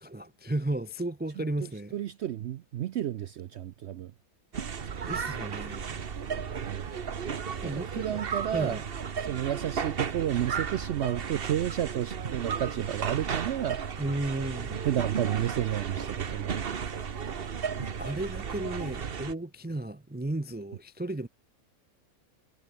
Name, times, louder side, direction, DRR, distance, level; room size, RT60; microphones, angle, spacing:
voice 1, 0.0-1.9 5.1-6.0 7.6-8.8 14.0-14.8 17.4-21.3, right 2 dB, 15° right, 0.3 m, -34 dB
voice 2, 1.9-4.1 6.6-6.9 7.6-8.8 9.2-13.8 14.8-16.9, right 11 dB, 65° right, 0.7 m, -31 dB
sound 1, 4.5-19.3, right 6 dB, 45° right, 1.2 m, -34 dB
omnidirectional pair, 1.5 m